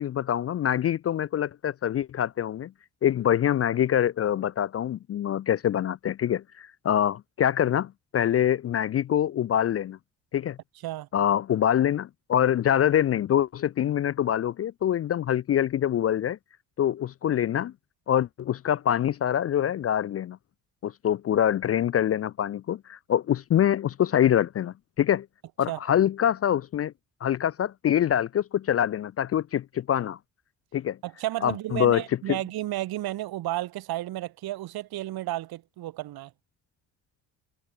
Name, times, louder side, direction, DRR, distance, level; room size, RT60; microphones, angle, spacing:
voice 1, 0.0-2.7 3.0-10.0 10.3-10.6 11.1-16.4 16.8-17.7 18.1-20.4 20.8-25.3 25.6-26.9 27.2-30.2 30.7-31.0 31.4-32.0 32.3-32.4, left 10 dB, 30° left, 0.5 m, -25 dB
voice 2, 31.0-36.3, right 15 dB, 50° right, 1.0 m, -32 dB
hypercardioid pair, 50°, 47 cm